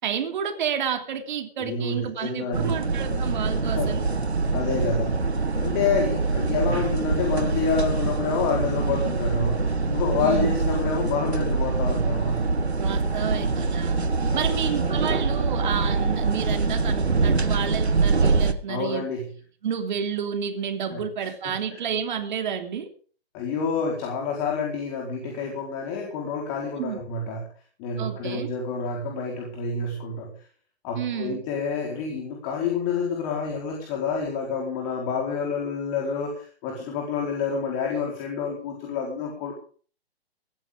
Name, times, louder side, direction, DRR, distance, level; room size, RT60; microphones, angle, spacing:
voice 1, 0.0-4.0 10.2-10.5 12.8-14.0 14.3-19.1 19.6-22.9 26.8-27.0 28.0-28.5 30.9-31.4, right 7 dB, 45° right, 6 dB, 3.2 m, -30 dB
voice 2, 1.6-2.8 3.8-4.0 4.5-5.2 5.6-12.4 13.1-13.3 14.3-14.9 18.7-19.2 20.9-21.5 23.3-27.4 27.8-30.3 30.8-39.5, left 5 dB, 25° left, 1 dB, 4.5 m, -28 dB
sound 1, 2.5-18.5, right 4 dB, 80° right, 1.7 m, -24 dB
19.0 x 13.5 x 3.8 m, 0.42 s
figure-of-eight pair, 130°, 32 cm